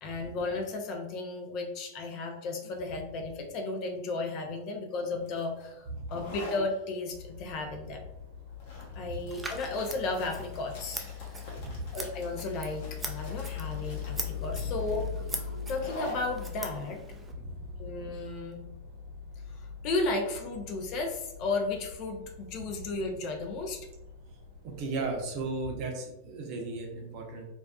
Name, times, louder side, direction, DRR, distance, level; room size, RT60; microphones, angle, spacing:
voice 1, 0.0-8.0 9.0-11.4 11.9-17.0 17.8-18.6 19.5-23.8, left 3 dB, 45° left, 3 dB, 0.5 m, -34 dB
sound 1, 5.2-18.6, left 1 dB, 65° left, 0.9 m, -47 dB
sound 2, 7.1-25.6, left 7 dB, 90° right, 0.9 m, -42 dB
Scissors, 9.3-17.3, right 3 dB, 15° right, 0.3 m, -42 dB
voice 2, 24.8-27.4, right 3 dB, 50° right, 1 dB, 0.6 m, -35 dB
2.4 x 2.3 x 2.2 m, 0.89 s
hypercardioid pair, 120°, 0 cm